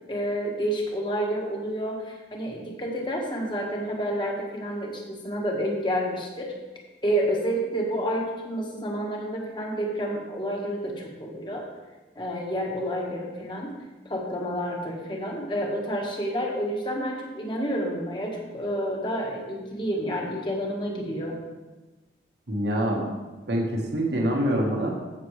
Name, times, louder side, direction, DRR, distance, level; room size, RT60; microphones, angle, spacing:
voice 1, 0.1-6.5 7.0-11.7 12.1-13.7 14.0-21.4, equal, 25° left, -1 dB, 1.5 m, -29 dB
voice 2, 22.5-23.2 23.5-24.9, equal, 75° right, -1 dB, 1.4 m, -25 dB
15.0 x 6.1 x 3.2 m, 1.2 s
head